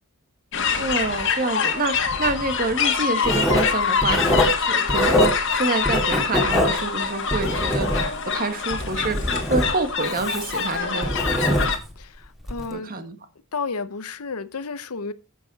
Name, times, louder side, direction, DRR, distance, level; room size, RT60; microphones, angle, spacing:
sound 1, 0.5-11.8, left 6 dB, 55° left, 1.6 m, -25 dB
voice 1, 0.7-11.7 12.7-13.2, right 3 dB, 40° right, 1.3 m, -27 dB
Writing, 3.2-5.6 5.8-8.3 8.7-12.0 12.4-12.6, equal, ahead, 2.0 m, -24 dB
voice 2, 12.0-12.9 13.5-15.1, left 4 dB, 80° left, 0.8 m, -32 dB
10.0 x 7.7 x 4.1 m
head